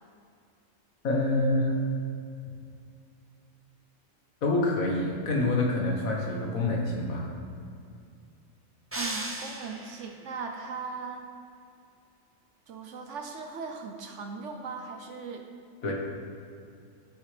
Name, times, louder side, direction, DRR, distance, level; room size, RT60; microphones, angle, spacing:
voice 1, 1.0-1.7 4.4-7.3 15.8-15.9, left 2 dB, 85° left, -2 dB, 1.8 m, -26 dB
sound 1, 8.9-10.2, right 1 dB, 15° right, 0.4 m, -36 dB
voice 2, 8.9-11.3 12.7-15.4 15.9-16.0, right 5 dB, 65° right, 4 dB, 1.0 m, -38 dB
12.5 x 6.6 x 3.3 m, 2.4 s
omnidirectional pair, 1.4 m